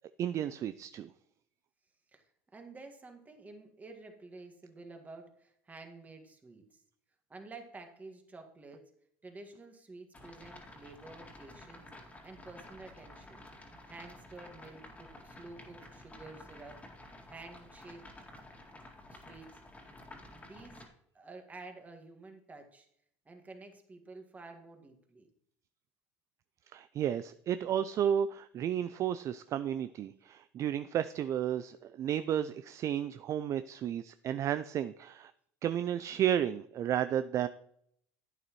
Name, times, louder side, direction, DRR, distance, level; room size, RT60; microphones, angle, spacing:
voice 1, 0.2-1.1 26.7-35.3 35.6-37.5, right 10 dB, 45° right, 13 dB, 0.4 m, -32 dB
voice 2, 2.5-6.8 7.3-8.9 9.2-13.5 13.9-16.8 17.3-18.0 19.0-19.6 20.2-20.9 21.1-22.9 23.3-25.3, right 3 dB, 20° right, 4 dB, 1.8 m, -51 dB
sound 1, 10.1-20.9, left 1 dB, 20° left, 2.3 m, -52 dB
11.0 x 8.6 x 3.1 m, 0.69 s
hypercardioid pair, 85°, 7 cm